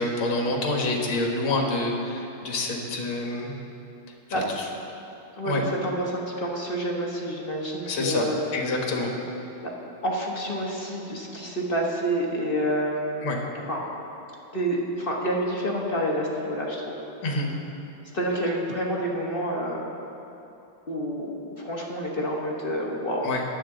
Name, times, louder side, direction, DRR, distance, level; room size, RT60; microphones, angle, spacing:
voice 1, 0.0-3.5 4.3-4.6 5.5-5.6 7.8-8.2 8.5-9.1 13.2-13.4 17.2-17.5 23.2-23.4, left 2 dB, 70° left, 0 dB, 2.3 m, -27 dB
voice 2, 4.3-4.7 5.4-8.4 9.6-9.7 10.0-13.3 13.7-13.8 14.5-16.9 18.1-19.8 20.9-23.3, equal, 30° left, -2 dB, 1.2 m, -28 dB
21.5 x 7.7 x 3.8 m, 3.0 s
omnidirectional pair, 2.3 m